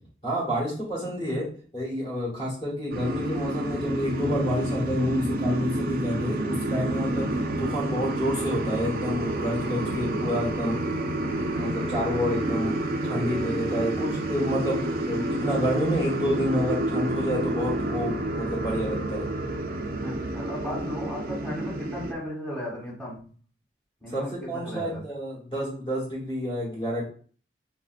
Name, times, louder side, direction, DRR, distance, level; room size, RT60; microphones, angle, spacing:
voice 1, 0.2-1.5 1.7-7.3 7.6-10.7 11.2-12.8 13.0-19.2 24.1-27.1, equal, 30° left, -5 dB, 1.1 m, -29 dB
sound 1, 2.9-22.1, right 1 dB, 50° right, 0.4 m, -29 dB
voice 2, 20.0-23.2 24.0-25.0, left 1 dB, 5° left, -6 dB, 1.1 m, -35 dB
3.4 x 2.5 x 2.4 m, 0.44 s
head